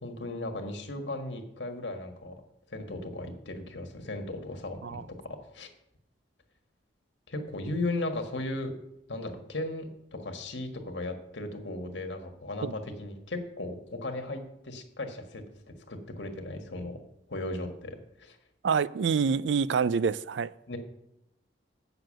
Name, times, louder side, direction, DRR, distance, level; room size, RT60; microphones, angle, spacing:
voice 1, 0.0-2.3 2.7-5.7 7.3-8.7 9.1-15.4 15.9-17.0 17.3-18.4 20.7-20.8, left 2 dB, 85° left, 1.6 m, -36 dB
voice 2, 18.6-20.5, right 6 dB, 85° right, 0.4 m, -26 dB
7.8 x 6.9 x 7.6 m
head